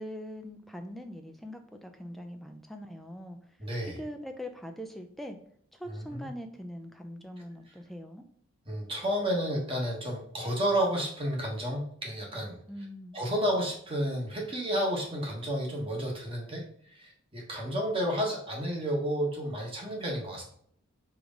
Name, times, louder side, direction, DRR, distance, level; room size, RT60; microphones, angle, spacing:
voice 1, 0.0-3.4 3.9-5.4 5.7-8.2 12.7-13.2, equal, ahead, 4 dB, 0.5 m, -42 dB
voice 2, 3.6-4.0 5.9-6.3 8.6-12.6 13.1-16.6 16.9-20.4, equal, 25° right, -1 dB, 1.5 m, -31 dB
4.7 x 3.8 x 5.1 m, 0.63 s
head